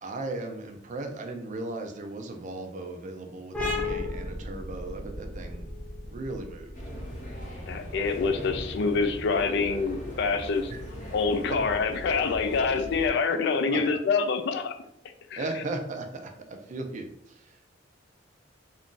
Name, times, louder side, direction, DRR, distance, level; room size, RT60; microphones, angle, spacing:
voice 1, 0.0-5.7 6.1-6.7 10.7-10.8 13.7-14.0 15.4-17.6, right 2 dB, 40° right, 5 dB, 0.4 m, -37 dB
sound 1, 3.5-10.8, left 2 dB, 5° left, 0.6 m, -36 dB
sound 2, 6.7-13.1, equal, 45° left, 0.8 m, -39 dB
voice 2, 7.7-10.7 11.1-14.7 15.3-15.6, left 4 dB, 65° left, 8 dB, 0.4 m, -26 dB
2.5 x 2.3 x 3.7 m, 0.74 s
head